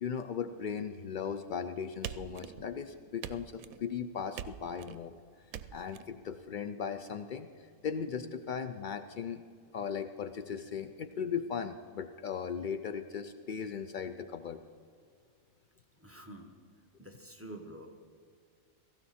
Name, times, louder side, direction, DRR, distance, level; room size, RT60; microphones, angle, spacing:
voice 1, 0.0-5.2 5.7-9.4 9.7-14.6, left 7 dB, 85° left, 10 dB, 0.4 m, -37 dB
sound 1, 2.0-2.8 3.2-3.8 4.4-5.0 5.5-6.0, right 10 dB, 85° right, 1.0 m, -43 dB
voice 2, 16.0-16.6 17.0-18.0, right 1 dB, 10° right, 3 dB, 1.1 m, -48 dB
17.5 x 15.0 x 4.2 m, 2.2 s
omnidirectional pair, 1.4 m